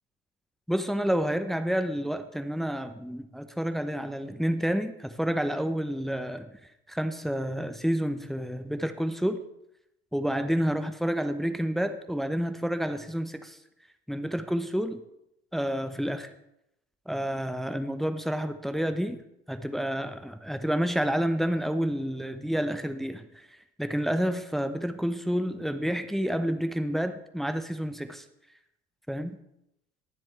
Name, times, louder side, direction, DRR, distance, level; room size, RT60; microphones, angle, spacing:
voice 1, 0.7-6.5 6.9-9.4 10.1-13.6 14.1-15.0 15.5-16.3 17.1-19.2 19.5-28.2 29.1-29.4, equal, ahead, 9 dB, 0.8 m, -29 dB
21.5 x 7.5 x 3.3 m, 0.83 s
figure-of-eight pair, 55°, 31 cm